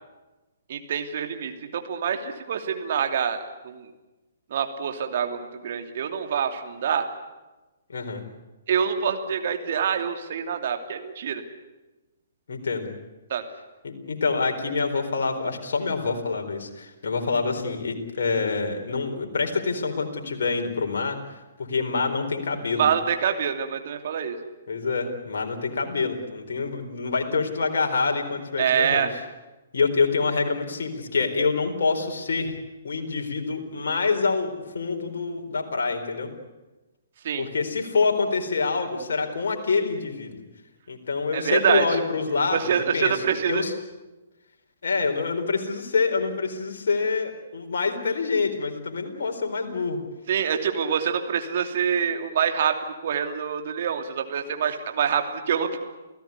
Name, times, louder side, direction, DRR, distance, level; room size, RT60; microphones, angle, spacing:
voice 1, 0.7-3.9 4.5-7.1 8.7-11.4 13.3-13.4 22.8-24.4 28.6-29.1 37.2-37.5 41.3-42.0 42.5-43.6 50.3-55.8, right 7 dB, 50° right, 6 dB, 2.8 m, -26 dB
voice 2, 7.9-8.2 12.5-12.9 13.8-21.2 21.6-22.9 24.7-29.0 29.7-32.6 32.8-36.3 37.4-40.4 40.9-43.1 43.5-43.7 44.8-50.0, left 4 dB, 60° left, 3 dB, 4.2 m, -26 dB
28.5 x 16.5 x 9.7 m, 1.1 s
figure-of-eight pair, 125°, 0 cm